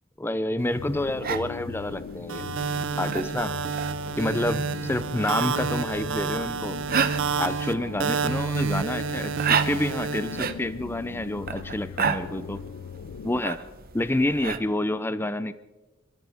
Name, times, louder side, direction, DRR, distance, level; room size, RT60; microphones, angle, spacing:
voice 1, 0.2-2.4 3.0-3.5 4.2-6.8 7.4-12.6 13.2-13.6 13.9-15.5, left 1 dB, 10° left, 14 dB, 0.5 m, -28 dB
sound 1, 0.6-14.6, right 6 dB, 45° right, 0.9 m, -33 dB
sound 2, 0.8-13.4, left 7 dB, 85° left, 0.4 m, -39 dB
sound 3, 2.3-10.5, right 5 dB, 65° right, 0.6 m, -29 dB
26.5 x 13.5 x 3.6 m, 1.1 s
head